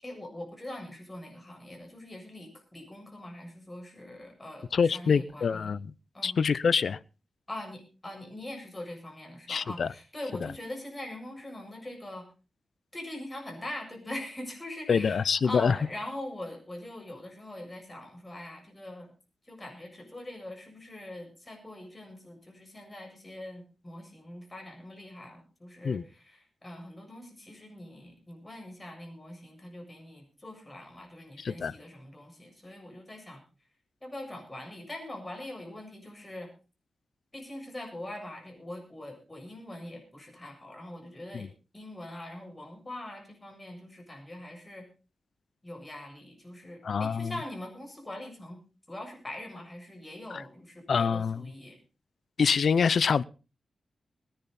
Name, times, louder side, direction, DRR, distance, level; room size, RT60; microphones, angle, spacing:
voice 1, 0.0-5.7 6.1-6.4 7.5-12.3 12.9-19.1 19.5-33.4 34.0-36.5 37.3-41.5 41.7-44.9 45.6-48.6 48.9-51.8, left 1 dB, 20° left, 7.5 m, -42 dB
voice 2, 4.7-5.9 6.2-7.0 9.5-9.9 14.9-15.8 25.8-26.0 31.4-31.7 41.3-41.5 46.8-47.3 50.9-51.5 52.4-53.2, left 6 dB, 70° left, 0.6 m, -25 dB
21.5 x 10.5 x 4.3 m
cardioid pair, 85°, 0 cm